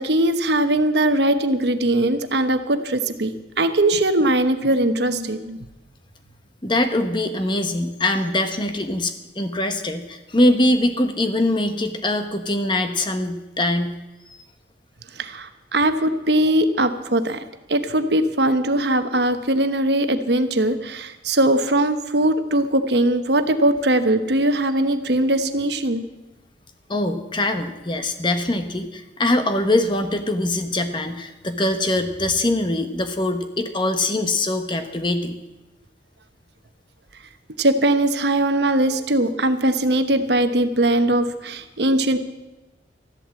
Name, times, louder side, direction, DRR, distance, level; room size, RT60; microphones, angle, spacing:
voice 1, 0.0-5.6 15.2-17.4 17.7-26.0 37.6-42.2, right 1 dB, 65° right, 9 dB, 1.1 m, -20 dB
voice 2, 6.6-14.0 26.9-35.4, left 1 dB, 25° left, 7 dB, 1.1 m, -22 dB
13.5 x 11.5 x 7.6 m, 1.1 s
head